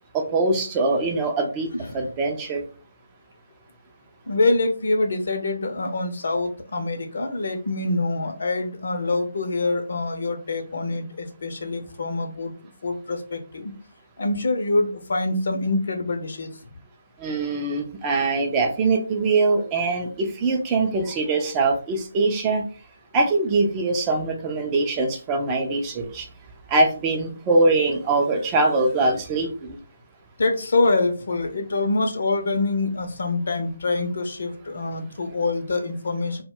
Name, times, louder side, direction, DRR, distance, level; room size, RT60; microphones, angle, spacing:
voice 1, 0.1-1.7 1.9-2.6 17.2-22.6 23.1-26.3 26.7-29.8, right 3 dB, 20° right, 2 dB, 0.4 m, -22 dB
voice 2, 4.3-12.5 12.8-13.7 14.2-16.5 30.4-36.4, left 2 dB, 55° left, 5 dB, 0.5 m, -25 dB
2.1 x 2.0 x 3.5 m, 0.37 s
figure-of-eight pair, 145°, 0 cm